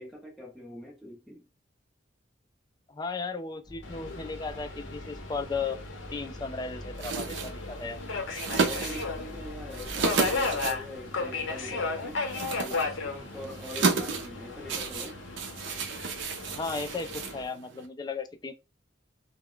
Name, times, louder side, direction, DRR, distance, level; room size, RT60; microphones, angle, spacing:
voice 1, 0.0-1.5 8.5-12.2 12.6-15.2, left 2 dB, ahead, 0.9 m, -43 dB
voice 2, 2.9-5.8 6.1-8.0 16.6-18.5, left 4 dB, 20° left, 0.3 m, -35 dB
sound 1, 3.6-10.8, equal, 30° right, 0.9 m, -45 dB
Subway metro underground, 3.8-17.4, left 3 dB, 80° left, 0.7 m, -35 dB
sound 2, 6.9-17.9, right 4 dB, 70° right, 0.5 m, -33 dB
2.2 x 2.1 x 3.7 m
head